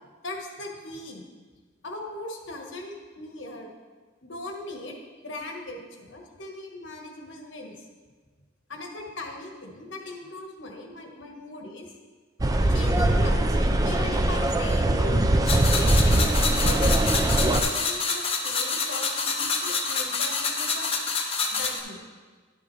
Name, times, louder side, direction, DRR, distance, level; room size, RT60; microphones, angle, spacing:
voice 1, 0.2-1.3 1.8-3.7 4.2-4.9 5.2-7.7 8.7-11.9 12.7-13.5 13.8-17.0 17.6-21.0 21.5-22.0, left 2 dB, 65° left, 2 dB, 1.2 m, -39 dB
sound 1, 12.4-17.6, right 1 dB, 20° right, 0.4 m, -21 dB
sound 2, 15.5-21.8, left 4 dB, 30° left, 0.8 m, -27 dB
11.0 x 7.1 x 3.2 m, 1.5 s
head